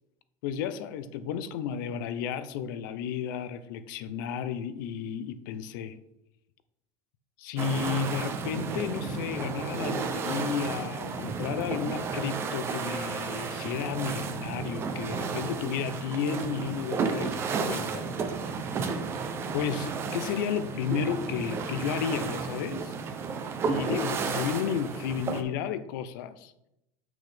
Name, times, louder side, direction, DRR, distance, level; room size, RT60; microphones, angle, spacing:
voice 1, 0.4-6.0 7.4-17.4 17.7-18.1 18.4-18.5 19.5-22.9 23.7-26.5, left 7 dB, 70° left, 12 dB, 0.6 m, -32 dB
sound 1, 7.6-25.4, right 5 dB, 20° right, 0.6 m, -33 dB
7.7 x 6.1 x 3.5 m, 0.86 s
cardioid pair, 170°, 11 cm